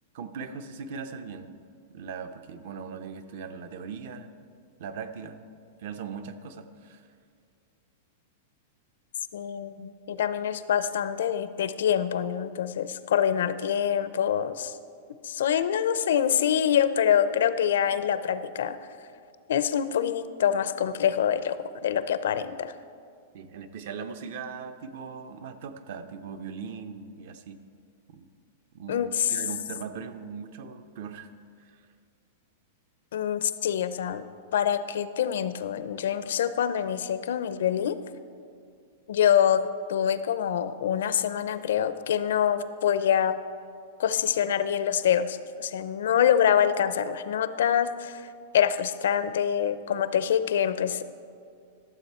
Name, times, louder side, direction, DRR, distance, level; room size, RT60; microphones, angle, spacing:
voice 1, 0.1-1.5 1.9-4.3 4.8-5.4 5.8-7.1 23.3-27.6 28.1-28.3 28.7-31.3 31.6-31.9, right 6 dB, 50° right, 9 dB, 0.6 m, -39 dB
voice 2, 9.3-14.8 15.2-18.8 19.5-22.7 28.9-29.4 33.1-34.2 34.5-38.0 39.1-39.6 39.9-43.4 44.0-48.2 48.5-51.0, left 9 dB, 80° left, 13 dB, 0.5 m, -25 dB
13.0 x 7.4 x 4.3 m, 2.3 s
supercardioid pair, 170°, 0 cm